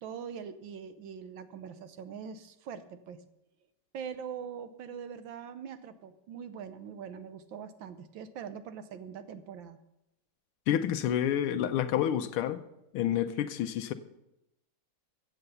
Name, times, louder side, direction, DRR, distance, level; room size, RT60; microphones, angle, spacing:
voice 1, 0.0-3.2 3.9-9.8, right 7 dB, 70° right, 1.5 m, -42 dB
voice 2, 10.7-12.6 12.9-13.9, left 10 dB, 90° left, 1.6 m, -29 dB
15.0 x 7.9 x 6.7 m
omnidirectional pair, 2.3 m